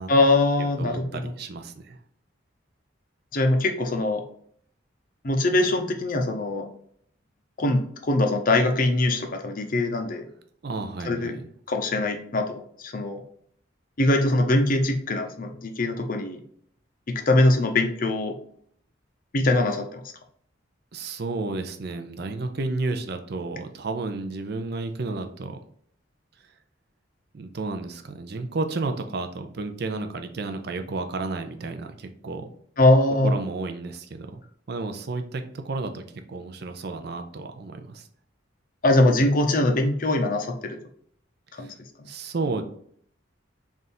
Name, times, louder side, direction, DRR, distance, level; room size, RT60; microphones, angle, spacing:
voice 1, 0.1-1.2 3.3-4.2 5.2-6.7 7.6-10.2 11.1-11.4 11.7-13.2 14.0-16.4 17.1-18.4 19.3-20.0 32.8-33.3 38.8-40.8 41.6-41.7, left 2 dB, 45° left, 4 dB, 0.6 m, -22 dB
voice 2, 0.6-2.0 10.6-11.5 20.9-25.6 27.3-32.5 33.2-34.4 34.7-38.1 41.5-41.8 42.0-42.6, right 3 dB, 55° right, 6 dB, 0.5 m, -32 dB
3.5 x 2.5 x 4.1 m, 0.63 s
head